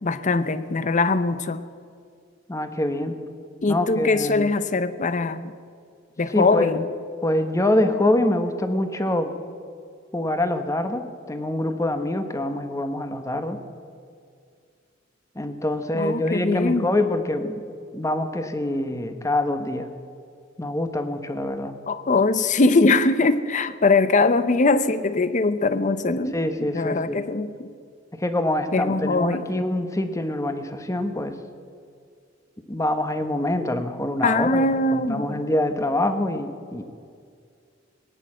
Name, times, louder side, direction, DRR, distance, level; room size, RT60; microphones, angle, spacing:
voice 1, 0.0-1.6 3.6-5.5 6.2-6.9 15.9-16.9 21.9-26.4 26.7-27.7 28.7-29.5 34.2-35.4, left 3 dB, 40° left, 14 dB, 0.7 m, -21 dB
voice 2, 2.5-3.1 3.7-4.5 6.3-6.7 7.2-9.3 10.1-13.6 15.4-17.6 17.9-19.9 20.6-21.7 26.3-27.2 28.1-31.4 32.7-34.6 34.9-36.8, left 1 dB, 15° left, 8 dB, 1.0 m, -25 dB
18.5 x 10.5 x 7.5 m, 2.2 s
head